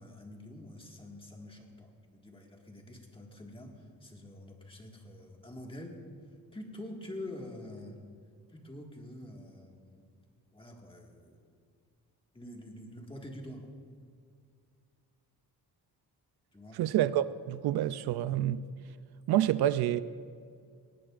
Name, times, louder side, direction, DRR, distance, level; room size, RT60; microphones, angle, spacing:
voice 1, 0.0-6.0 6.5-8.0 8.5-10.1 10.5-11.5 12.3-13.7 16.5-16.8, left 1 dB, 15° left, 1.7 m, -46 dB
voice 2, 16.7-18.7 19.3-20.0, right 12 dB, 80° right, 0.5 m, -28 dB
19.0 x 16.5 x 2.5 m
cardioid pair, 125°, 38 cm